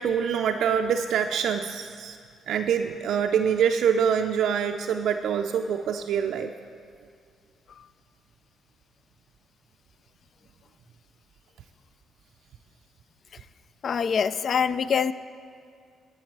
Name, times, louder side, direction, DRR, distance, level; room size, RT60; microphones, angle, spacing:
voice 1, 0.0-2.2 2.5-6.5, right 7 dB, 70° right, 5 dB, 0.4 m, -25 dB
voice 2, 13.8-15.1, left 6 dB, 55° left, 16 dB, 0.3 m, -24 dB
12.5 x 7.8 x 4.6 m, 2.2 s
cardioid pair, 90°, 0 cm